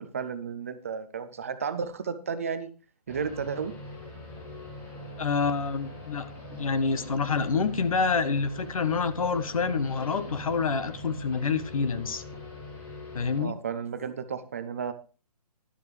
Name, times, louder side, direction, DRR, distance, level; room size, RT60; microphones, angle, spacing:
voice 1, 0.0-2.7 3.1-3.7 13.4-14.9, right 6 dB, 20° right, 11 dB, 0.5 m, -33 dB
sound 1, 3.1-13.4, left 1 dB, 15° left, 3.4 m, -42 dB
voice 2, 5.2-12.2 13.1-13.5, left 5 dB, 60° left, 13 dB, 1.4 m, -27 dB
12.0 x 11.5 x 3.3 m, 0.35 s
hypercardioid pair, 170°, 20 cm